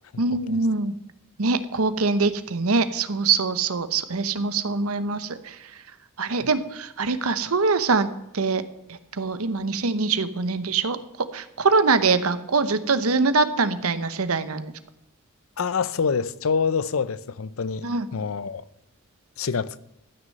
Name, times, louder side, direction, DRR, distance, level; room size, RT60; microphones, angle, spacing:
voice 1, 0.2-0.9 1.4-5.6 6.2-8.1 8.3-8.6 8.9-14.7 17.8-18.1, right 4 dB, 80° right, 0.9 m, -23 dB
voice 2, 15.6-18.6 19.4-19.8, left 5 dB, 75° left, 0.6 m, -26 dB
13.0 x 6.3 x 7.7 m
head